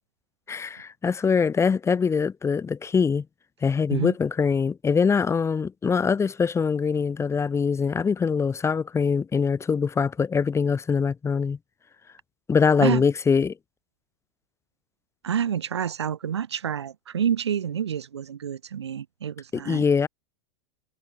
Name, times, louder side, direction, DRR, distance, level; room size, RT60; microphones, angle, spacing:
voice 1, 0.5-3.2 3.6-11.6 12.5-13.5 19.5-20.1, left 5 dB, 20° left, 5.6 m, -23 dB
voice 2, 15.2-19.8, right 8 dB, 85° right, 6.2 m, -28 dB
hypercardioid pair, 100°, 14 cm